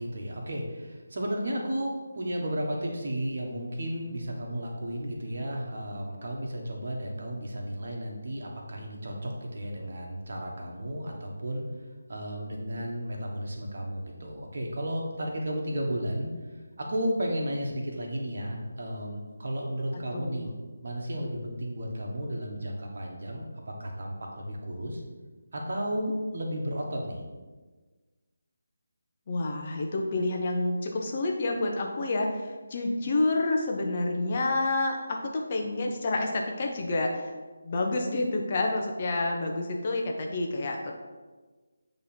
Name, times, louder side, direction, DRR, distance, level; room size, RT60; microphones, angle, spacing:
voice 1, 0.0-11.6 12.1-16.3 16.8-20.5 20.8-25.0 25.5-27.2, equal, 55° right, 0 dB, 1.3 m, -33 dB
voice 2, 19.9-20.5 29.3-37.4 37.6-40.9, left 2 dB, 35° left, 1 dB, 0.7 m, -29 dB
8.2 x 3.2 x 4.4 m, 1.3 s
figure-of-eight pair, 155°, 0 cm